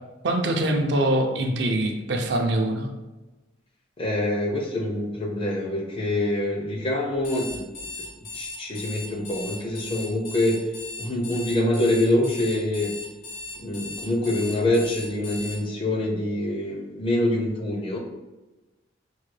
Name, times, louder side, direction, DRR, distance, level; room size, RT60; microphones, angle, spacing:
voice 1, 0.2-2.9, right 1 dB, 60° right, 3 dB, 0.5 m, -23 dB
voice 2, 4.0-7.7 8.3-10.6 11.0-12.9 13.6-18.0, left 1 dB, 25° left, 1 dB, 0.5 m, -25 dB
Alarm, 7.2-15.6, left 2 dB, 75° left, 1.0 m, -37 dB
4.6 x 2.1 x 3.2 m, 1.1 s
head